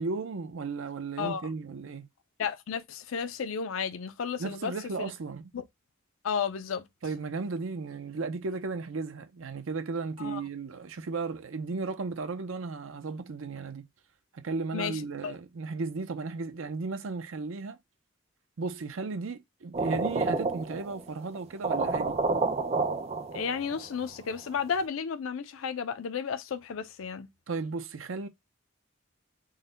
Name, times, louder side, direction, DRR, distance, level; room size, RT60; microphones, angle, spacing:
voice 1, 0.0-2.1 4.4-5.5 7.0-13.8 14.3-17.8 18.6-22.2 27.5-28.3, right 4 dB, 80° right, 0.6 m, -35 dB
voice 2, 1.2-1.5 2.4-4.7 5.0-5.1 5.5-5.6 6.2-6.9 10.2-10.4 14.7-15.3 23.3-27.3, left 6 dB, 85° left, 0.5 m, -33 dB
sound 1, 19.7-21.0 21.3-21.4 21.6-23.9, right 3 dB, 30° right, 0.4 m, -29 dB
3.9 x 2.1 x 3.8 m
head